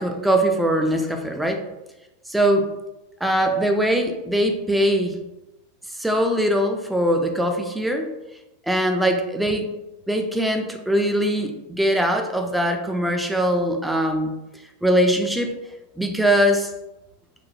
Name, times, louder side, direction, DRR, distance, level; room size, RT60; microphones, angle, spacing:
voice 1, 0.0-1.6 2.3-2.7 3.2-5.2 5.9-8.1 8.7-9.7 10.1-14.3 14.8-15.5 16.0-16.7, equal, 5° right, 4 dB, 0.4 m, -21 dB
3.1 x 2.1 x 2.4 m, 0.98 s
hypercardioid pair, 95°, 0 cm